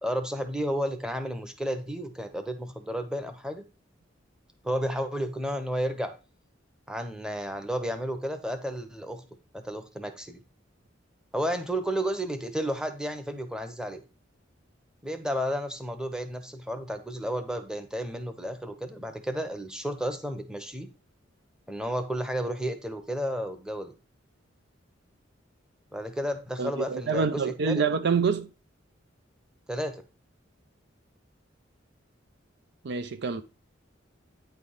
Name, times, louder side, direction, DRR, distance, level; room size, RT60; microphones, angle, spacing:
voice 1, 0.0-3.6 4.6-6.1 6.9-9.2 9.5-10.4 11.3-14.0 15.0-20.9 21.7-23.9 25.9-27.8 29.7-30.0, equal, 5° right, 0.9 m, -32 dB
voice 2, 26.6-28.5 32.8-33.4, right 5 dB, 60° right, 0.5 m, -26 dB
9.3 x 3.4 x 5.5 m
head